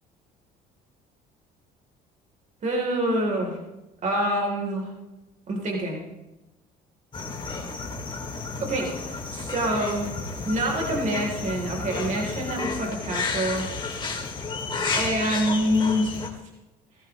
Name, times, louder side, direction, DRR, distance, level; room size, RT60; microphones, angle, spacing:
voice 1, 2.6-3.6 4.0-4.9 5.5-6.0 8.6-10.1 10.4-13.6 14.9-16.3, equal, 45° right, 0 dB, 3.1 m, -26 dB
sound 1, 7.1-16.3, left 4 dB, 30° left, 2.5 m, -32 dB
17.0 x 15.0 x 3.0 m, 1.0 s
cardioid pair, 110°, 17 cm